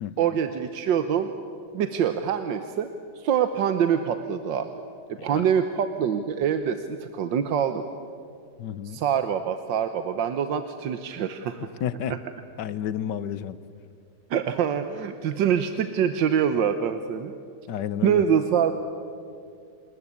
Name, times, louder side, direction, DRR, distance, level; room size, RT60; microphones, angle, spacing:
voice 1, 0.2-1.3 1.7-2.9 3.2-4.7 5.2-7.8 8.8-11.7 12.1-12.2 14.3-17.3 18.0-18.7, right 8 dB, 90° right, 8 dB, 1.6 m, -25 dB
voice 2, 8.6-9.0 11.8-12.1 12.6-13.6 17.7-18.2, left 9 dB, 75° left, 15 dB, 1.5 m, -31 dB
27.5 x 20.5 x 8.5 m, 2.4 s
omnidirectional pair, 1.9 m